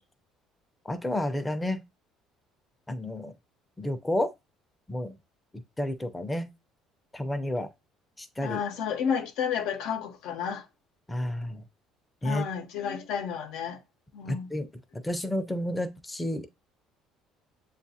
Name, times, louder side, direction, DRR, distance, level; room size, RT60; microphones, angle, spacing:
voice 1, 0.8-1.8 2.9-3.3 3.8-4.3 4.9-5.1 5.5-6.5 7.1-7.7 8.2-8.6 11.1-11.6 12.2-12.4 14.3-14.7 15.0-16.5, left 1 dB, 10° left, 0.6 m, -30 dB
voice 2, 8.4-10.7 12.2-13.8 14.1-14.5, left 7 dB, 80° left, 0.7 m, -31 dB
6.9 x 2.4 x 2.7 m
cardioid pair, 100°, 0 cm